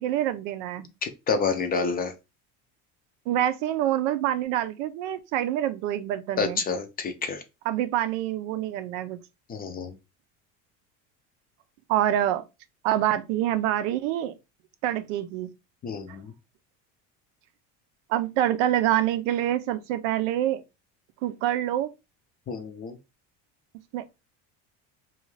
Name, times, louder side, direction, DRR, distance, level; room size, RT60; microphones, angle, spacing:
voice 1, 0.0-0.9 3.3-6.6 7.7-9.2 11.9-12.4 12.8-14.3 14.8-15.5 16.1-16.2 18.1-20.6 21.2-21.9 23.9-24.2, right 12 dB, 90° right, 0.5 m, -26 dB
voice 2, 1.0-2.1 6.4-7.4 9.5-10.0 15.8-16.3 22.5-23.0, left 5 dB, 25° left, 0.4 m, -28 dB
2.6 x 2.3 x 3.1 m
supercardioid pair, 125°, 36 cm